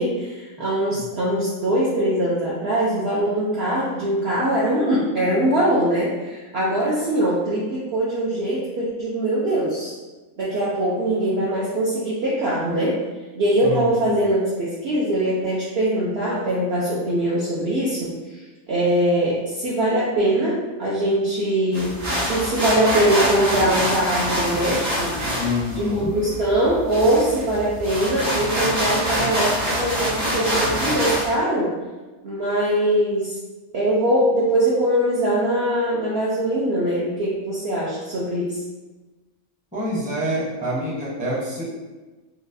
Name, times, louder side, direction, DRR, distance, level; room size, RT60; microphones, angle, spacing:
voice 1, 0.0-9.9 10.4-13.0 13.4-18.4 18.7-21.9 22.2-25.2 25.8-31.7 32.2-33.4 33.7-38.6, right 1 dB, 60° right, -7 dB, 0.7 m, -22 dB
voice 2, 13.6-14.2 25.4-26.2 39.7-41.6, left 1 dB, 10° right, -8 dB, 0.6 m, -26 dB
sound 1, 21.7-31.3, equal, 90° right, 1.8 m, -25 dB
3.9 x 2.3 x 2.6 m, 1.2 s
omnidirectional pair, 1.5 m